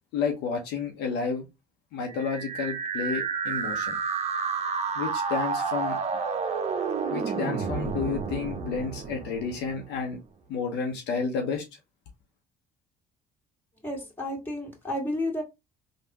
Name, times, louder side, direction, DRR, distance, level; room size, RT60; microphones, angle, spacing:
voice 1, 0.1-1.4 1.9-4.0 4.9-6.0 7.1-10.2 10.5-11.6, left 5 dB, 70° left, 0.9 m, -31 dB
sound 1, 2.1-10.0, right 5 dB, 35° right, 0.7 m, -30 dB
voice 2, 13.8-15.4, left 1 dB, 10° left, 1.9 m, -31 dB
3.4 x 2.4 x 3.0 m
hypercardioid pair, 65°, 18 cm